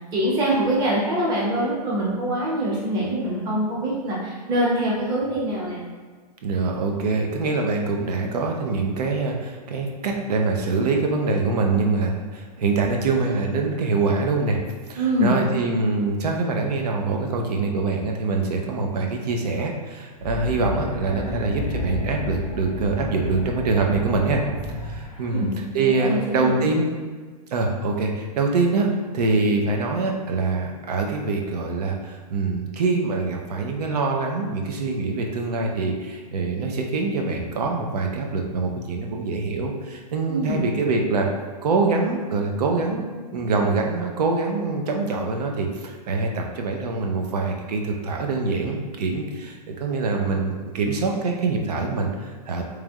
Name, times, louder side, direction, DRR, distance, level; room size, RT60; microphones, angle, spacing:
voice 1, 0.1-5.8 15.0-15.4 25.3-26.5 40.3-40.6, right 1 dB, 20° right, -5 dB, 0.9 m, -24 dB
voice 2, 6.4-14.6 14.9-24.4 24.7-26.8 27.5-41.3 41.6-52.6, right 3 dB, 75° right, 1 dB, 0.8 m, -24 dB
sound 1, 20.2-25.4, left 1 dB, 10° left, 0.6 m, -32 dB
3.3 x 3.2 x 3.6 m, 1.5 s
hypercardioid pair, 160°, 20 cm